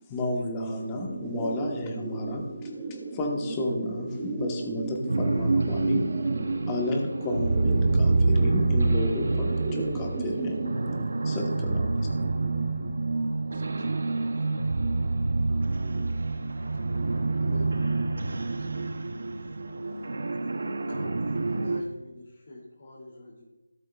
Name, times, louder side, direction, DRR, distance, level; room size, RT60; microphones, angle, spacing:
voice 1, 0.1-6.1 6.7-10.6 11.2-11.9, left 1 dB, 15° left, 1 dB, 1.2 m, -32 dB
sound 1, 1.1-11.0, right 3 dB, 10° right, 1.0 m, -35 dB
sound 2, 5.1-21.8, right 3 dB, 65° right, 0.8 m, -27 dB
voice 2, 11.7-13.2 13.5-14.5 15.4-16.2 16.5-16.6 16.9-17.6 18.5-19.0, right 4 dB, 35° right, 5 dB, 1.2 m, -45 dB
voice 3, 17.4-18.4 19.3-19.5 20.9-23.4, left 1 dB, 40° left, -6 dB, 2.8 m, -44 dB
16.5 x 8.2 x 2.4 m, 1.1 s
figure-of-eight pair, 170°, 0 cm